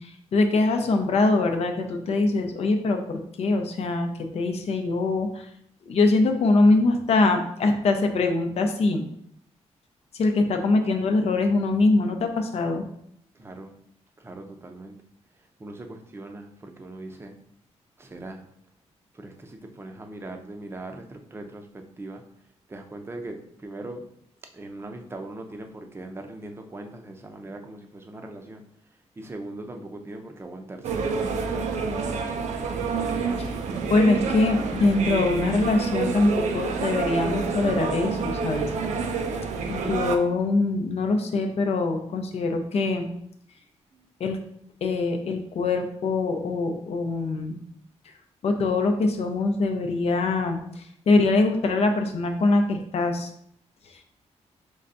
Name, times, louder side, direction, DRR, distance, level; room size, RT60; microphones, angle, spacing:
voice 1, 0.0-5.5 5.9-9.1 10.1-12.8 33.9-38.7 39.7-43.1 44.2-44.4 44.8-47.6 48.4-53.3, left 3 dB, 65° left, 4 dB, 0.5 m, -23 dB
voice 2, 13.3-13.8 14.2-15.0 15.6-17.3 18.0-18.5 19.1-22.2 22.7-24.1 24.5-28.6 29.2-31.8 33.1-33.5 43.9-44.1, right 2 dB, 20° right, 4 dB, 0.6 m, -40 dB
sound 1, 30.8-40.2, right 5 dB, 85° right, 0.5 m, -28 dB
5.4 x 3.3 x 2.6 m, 0.71 s
cardioid pair, 115°, 12 cm